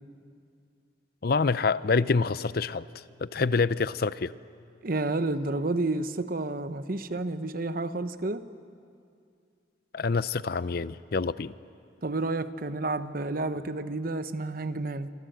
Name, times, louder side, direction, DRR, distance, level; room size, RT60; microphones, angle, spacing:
voice 1, 1.2-2.8 3.2-4.3 9.9-11.5, left 4 dB, 55° left, 16 dB, 0.5 m, -26 dB
voice 2, 4.8-8.4 12.0-15.1, right 2 dB, 50° right, 12 dB, 0.9 m, -30 dB
28.0 x 23.0 x 7.9 m, 2.4 s
head